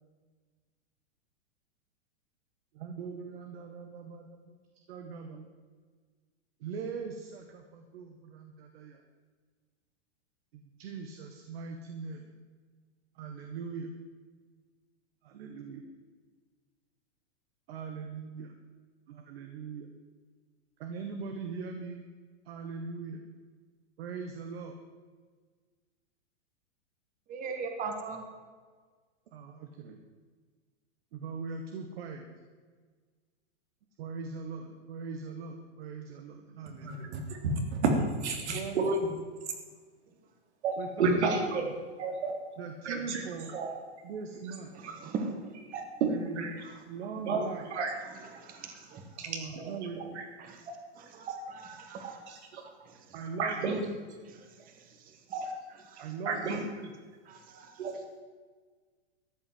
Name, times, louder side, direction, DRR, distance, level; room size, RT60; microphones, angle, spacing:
voice 1, 2.7-4.5 4.9-5.5 6.6-9.0 10.5-12.2 13.2-13.9 15.2-15.9 17.7-18.5 19.1-19.9 20.8-22.0 22.5-23.2 24.0-24.8 29.3-30.0 31.1-32.3 34.0-37.2 38.5-38.8 40.8-41.4 42.6-43.5 44.0-44.8 46.1-46.4 46.9-47.7 49.3-50.2 53.1-53.7 56.0-56.9, right 5 dB, 60° right, 5 dB, 1.7 m, -41 dB
voice 2, 27.3-28.3 40.1-40.3 44.7-45.6 46.6-46.8 47.9-49.2 50.4-50.7 50.9-52.2 52.8-53.3 54.2-56.1 57.2-58.2, right 4 dB, 25° right, 4 dB, 1.7 m, -42 dB
voice 3, 36.8-39.1 40.6-41.7 42.0-43.8 44.3-45.0 45.5-46.7 47.2-48.0 49.2-50.3 50.7-50.8 51.3-51.4 52.0-52.6 53.4-53.9 55.3-55.5 56.2-56.8 57.8-57.9, right 3 dB, 75° right, 3 dB, 3.3 m, -32 dB
13.5 x 9.0 x 7.9 m, 1.5 s
hypercardioid pair, 140°, 34 cm